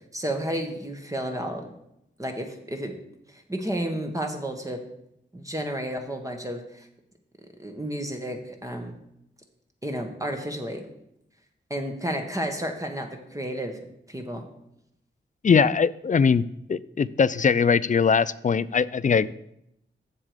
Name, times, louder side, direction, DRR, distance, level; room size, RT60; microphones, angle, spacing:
voice 1, 0.1-1.7 2.2-2.9 3.3-4.8 5.3-6.9 7.6-9.0 9.8-10.8 11.7-13.8 14.1-14.4, right 1 dB, 15° right, 3 dB, 1.3 m, -31 dB
voice 2, 15.4-16.4 16.7-19.3, left 6 dB, 40° left, 17 dB, 0.4 m, -21 dB
7.2 x 6.8 x 4.9 m, 0.79 s
cardioid pair, 60°, 20 cm